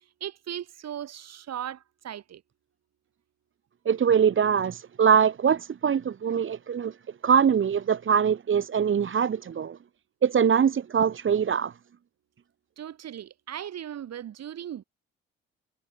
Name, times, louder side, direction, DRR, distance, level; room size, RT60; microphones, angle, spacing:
voice 1, 0.2-2.4 12.8-14.8, right 10 dB, 55° right, 2.9 m, -37 dB
voice 2, 3.8-6.9 7.2-9.8 10.2-11.7, right 7 dB, 40° right, 1.3 m, -23 dB
hypercardioid pair, 50°, 30 cm